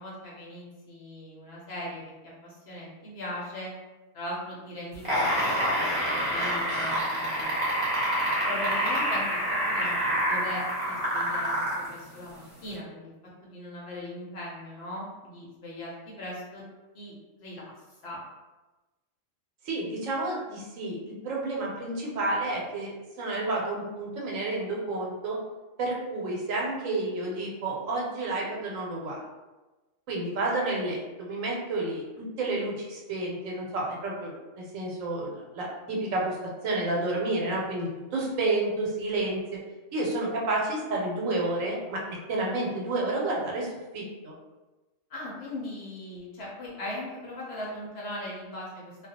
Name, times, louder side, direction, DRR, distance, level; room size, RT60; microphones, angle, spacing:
voice 1, 0.0-2.1 2.4-3.7 4.1-5.5 6.0-7.5 8.5-9.4 9.7-13.1 13.4-16.6 16.9-17.1 17.4-17.7 18.0-18.2 45.1-49.1, left 1 dB, 60° left, -5 dB, 0.9 m, -39 dB
sound 1, 4.9-11.9 12.7-12.8, equal, 30° right, 0.8 m, -27 dB
voice 2, 19.6-25.4 25.8-29.2 30.1-36.4 36.6-39.4 39.9-43.7 43.9-44.3, right 2 dB, 80° right, -3 dB, 1.1 m, -30 dB
2.4 x 2.2 x 2.7 m, 1.1 s
omnidirectional pair, 1.3 m